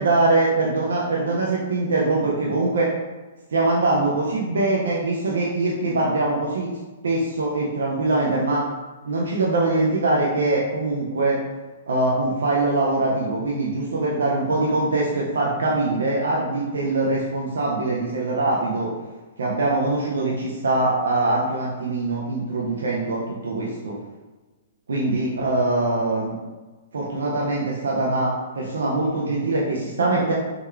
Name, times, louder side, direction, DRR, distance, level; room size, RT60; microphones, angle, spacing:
voice 1, 0.0-2.9 3.5-6.7 7.0-8.7 9.0-11.4 11.9-18.9 19.4-24.0 24.9-26.4 26.9-30.3, right 2 dB, 75° right, -4 dB, 0.5 m, -23 dB
3.6 x 3.1 x 2.3 m, 1.3 s
figure-of-eight pair, 115°, 0 cm